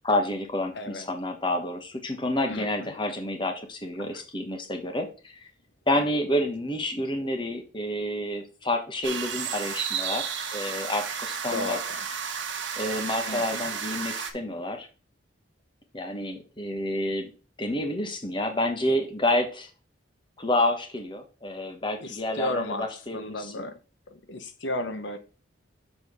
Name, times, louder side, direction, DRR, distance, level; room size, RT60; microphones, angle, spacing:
voice 1, 0.0-5.4 5.9-11.8 12.8-14.9 15.9-17.3 17.6-19.7 20.4-23.7, left 1 dB, 25° left, 5 dB, 1.2 m, -29 dB
voice 2, 0.7-1.1 2.5-2.9 4.1-4.2 11.5-12.1 13.3-13.7 22.0-22.9 23.1-23.7 24.1-25.2, left 2 dB, 65° left, 8 dB, 0.9 m, -34 dB
sound 1, 9.0-14.3, right 7 dB, 75° right, 1.3 m, -32 dB
6.8 x 4.3 x 5.5 m, 0.35 s
head